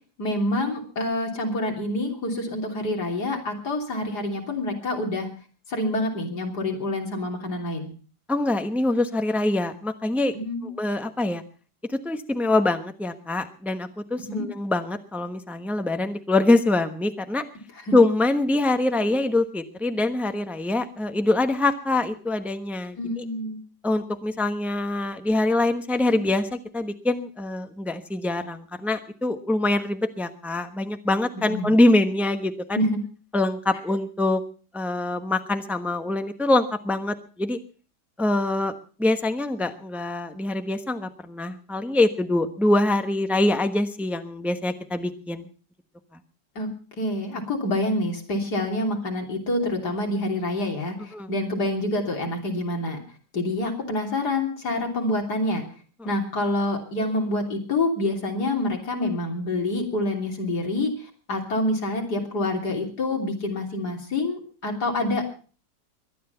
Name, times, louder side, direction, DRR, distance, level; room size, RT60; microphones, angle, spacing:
voice 1, 0.2-5.3 5.7-7.9 10.3-10.7 14.3-14.5 17.8-17.9 23.0-23.6 31.4-31.8 32.8-33.0 46.6-46.7 47.0-53.0 53.3-55.6 56.0-65.3, left 1 dB, 75° left, 2 dB, 3.8 m, -27 dB
voice 2, 8.3-10.3 10.6-11.4 11.9-17.4 17.9-23.2 23.8-32.8 33.3-34.4 34.7-37.6 38.2-38.7 39.0-45.5 51.1-51.3, left 2 dB, ahead, 8 dB, 0.9 m, -24 dB
22.5 x 10.5 x 5.7 m, 0.40 s
omnidirectional pair, 1.8 m